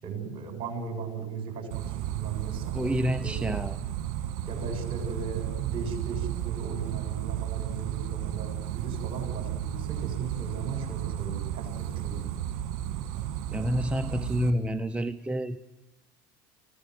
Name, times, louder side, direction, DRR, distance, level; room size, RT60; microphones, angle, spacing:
voice 1, 0.0-2.8 3.2-3.4 4.5-12.3, right 5 dB, 50° right, 5 dB, 7.2 m, -37 dB
sound 1, 1.7-14.5, right 11 dB, 65° right, 2.1 m, -33 dB
voice 2, 2.7-3.8 13.5-15.7, equal, 10° right, 11 dB, 0.8 m, -28 dB
25.0 x 17.0 x 9.5 m, 1.1 s
hypercardioid pair, 85°, 12 cm